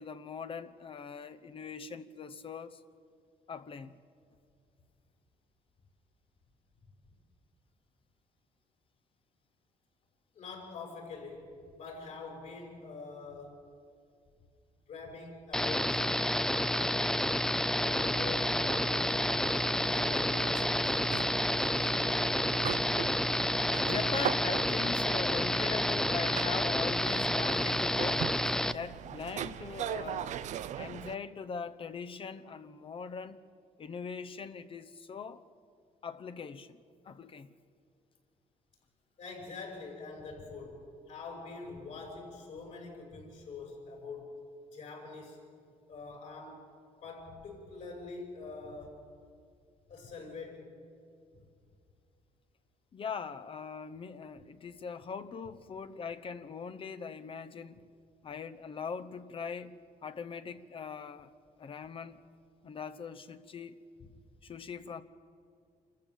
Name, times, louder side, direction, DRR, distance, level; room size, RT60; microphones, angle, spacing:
voice 1, 0.0-2.8 3.5-4.0 19.8-19.9 23.8-28.3 28.7-30.4 30.8-33.4 33.8-35.4 36.0-37.5 52.9-57.8 58.2-61.3 61.6-62.3 62.6-63.8 64.4-65.0, left 6 dB, 40° left, 0.9 m, -41 dB
voice 2, 10.3-13.6 14.9-17.1 17.8-21.5 21.8-22.3 39.2-44.3 44.7-45.4 45.9-46.7 47.0-49.0 49.9-50.8, left 4 dB, 65° left, 5.9 m, -45 dB
sound 1, 15.5-28.7, left 1 dB, 5° left, 0.4 m, -29 dB
sound 2, 17.8-31.2, right 10 dB, 60° right, 0.6 m, -41 dB
27.0 x 14.5 x 7.2 m
cardioid pair, 105°, 14 cm